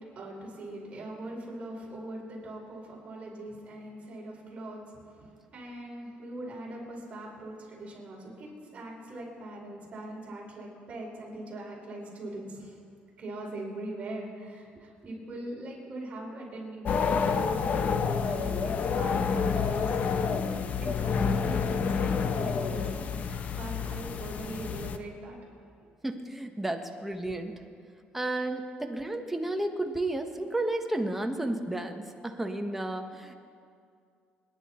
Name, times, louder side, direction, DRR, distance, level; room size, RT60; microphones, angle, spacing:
voice 1, 0.2-12.7 13.2-20.4 20.8-25.4, right 1 dB, 35° right, -4 dB, 5.3 m, -41 dB
sound 1, 16.8-25.0, left 6 dB, 45° left, 0.8 m, -28 dB
voice 2, 26.0-27.5 28.1-33.3, right 1 dB, 5° right, 4 dB, 1.2 m, -32 dB
28.0 x 11.0 x 4.4 m, 2.3 s
cardioid pair, 130°, 4 cm